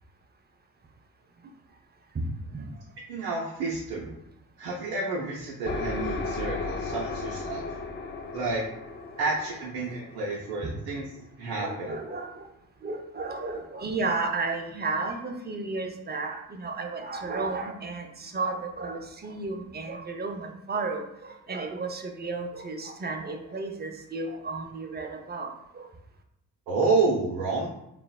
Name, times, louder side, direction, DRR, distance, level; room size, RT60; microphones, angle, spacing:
voice 1, 2.1-2.8 10.6-10.7 11.6-12.5 12.8-25.9, right 3 dB, 25° right, 4 dB, 0.5 m, -33 dB
voice 2, 3.1-4.2 4.6-7.7 8.3-8.6 9.2-12.0 26.7-27.7, right 3 dB, 65° right, -3 dB, 0.7 m, -29 dB
sound 1, 5.7-11.3, left 3 dB, 30° left, 0.4 m, -35 dB
3.2 x 2.0 x 2.3 m, 0.84 s
hypercardioid pair, 45°, 42 cm